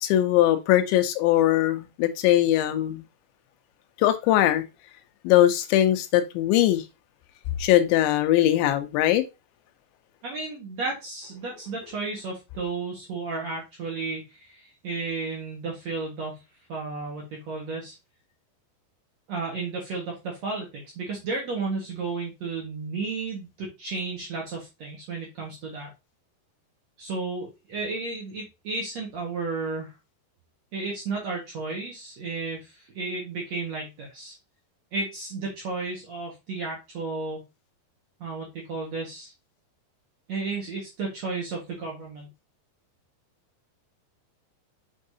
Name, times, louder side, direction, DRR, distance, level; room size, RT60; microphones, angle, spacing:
voice 1, 0.0-3.0 4.0-4.6 5.2-6.8 7.6-9.2, left 13 dB, 90° left, 3.1 m, -21 dB
voice 2, 10.2-16.4 16.7-17.9 19.3-25.9 27.0-29.9 30.7-34.3 34.9-37.4 38.2-39.3 40.3-42.3, right 3 dB, 60° right, 1.9 m, -33 dB
6.4 x 5.9 x 2.7 m
omnidirectional pair, 5.0 m